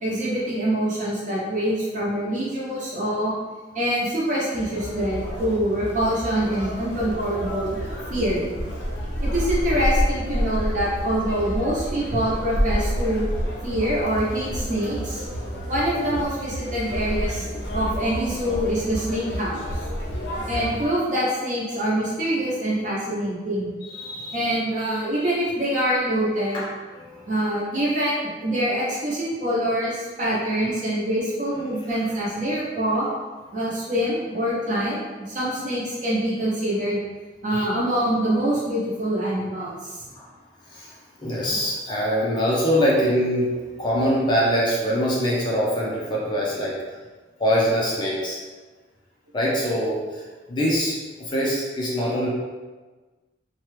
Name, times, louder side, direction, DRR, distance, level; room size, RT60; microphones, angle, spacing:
voice 1, 0.0-3.3 3.7-7.8 8.1-8.4 9.2-13.2 13.6-15.2 15.7-17.5 17.7-19.8 20.5-23.7 24.3-26.6 27.3-33.0 33.5-37.0 37.4-40.0, right 1 dB, 40° right, -6 dB, 0.9 m, -25 dB
Conversation, 4.5-20.9, equal, 70° left, 0.7 m, -29 dB
voice 2, 23.8-24.6 26.5-26.6 26.9-27.2 37.5-37.7 40.1-40.3 40.7-46.8 47.4-48.4 49.3-52.3, equal, 25° left, -4 dB, 0.4 m, -24 dB
2.8 x 2.2 x 3.2 m, 1.3 s
head